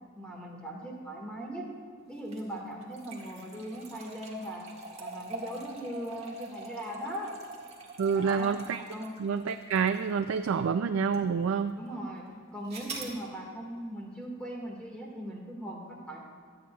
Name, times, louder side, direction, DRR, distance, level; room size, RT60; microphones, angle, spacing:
voice 1, 0.2-1.7 2.1-4.6 5.0-7.3 8.1-8.6 8.9-9.1 11.7-16.2, right 1 dB, 5° left, -3 dB, 1.7 m, -39 dB
sound 1, 2.2-10.6 11.1-11.2 12.7-13.2, right 2 dB, 30° right, 1.7 m, -44 dB
voice 2, 8.0-8.8 9.2-11.7, right 6 dB, 80° right, 8 dB, 0.4 m, -28 dB
24.5 x 8.9 x 2.3 m, 2.1 s
head